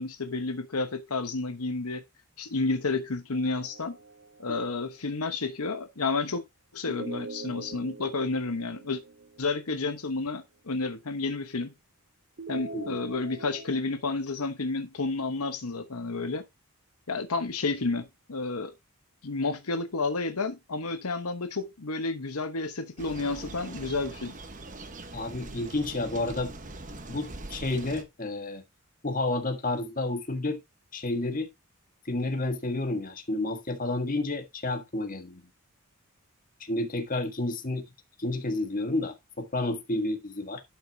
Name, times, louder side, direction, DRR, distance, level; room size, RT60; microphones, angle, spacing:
voice 1, 0.0-2.0 2.4-4.0 4.4-6.4 6.7-9.0 9.4-11.7 12.5-16.4 17.1-18.7 19.2-24.3, left 3 dB, 85° left, 1.1 m, -31 dB
sound 1, 3.3-4.9 6.9-10.0 12.4-13.8, right 3 dB, 55° right, 1.1 m, -43 dB
sound 2, 23.0-28.0, right 2 dB, 35° right, 1.2 m, -42 dB
voice 2, 25.1-26.5 27.1-28.6 29.0-30.6 30.9-31.5 32.0-35.4 36.6-37.8 38.2-40.6, left 2 dB, 40° left, 1.6 m, -30 dB
11.5 x 5.9 x 2.8 m
head